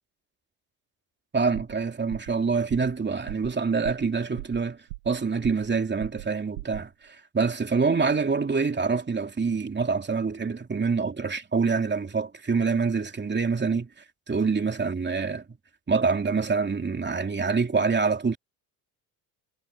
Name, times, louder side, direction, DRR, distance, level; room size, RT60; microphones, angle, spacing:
voice 1, 1.3-13.9 14.3-15.6 15.9-18.4, right 5 dB, 25° right, 2.9 m, -26 dB
sound 1, 1.6-1.8 2.1-2.4 2.7-3.0 3.3-3.5 3.8-4.1 4.4-5.2 5.4-5.7 6.0-6.3 6.6-6.9, right 20 dB, 85° right, 1.8 m, -38 dB
hypercardioid pair, 75°, 47 cm